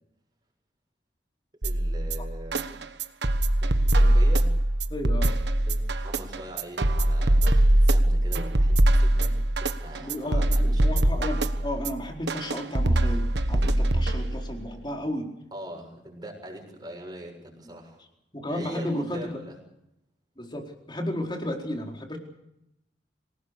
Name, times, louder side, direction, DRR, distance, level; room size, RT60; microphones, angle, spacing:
voice 1, 1.6-2.8 3.6-4.5 5.6-11.2 15.5-18.0 18.5-19.6, right 1 dB, 25° right, 2 dB, 7.0 m, -42 dB
sound 1, 1.6-14.6, right 1 dB, 70° right, 1.3 m, -22 dB
voice 2, 4.9-5.3 10.0-15.3 18.3-19.4 20.4-22.2, left 1 dB, 25° left, 1 dB, 4.4 m, -33 dB
26.5 x 18.5 x 6.8 m, 0.83 s
head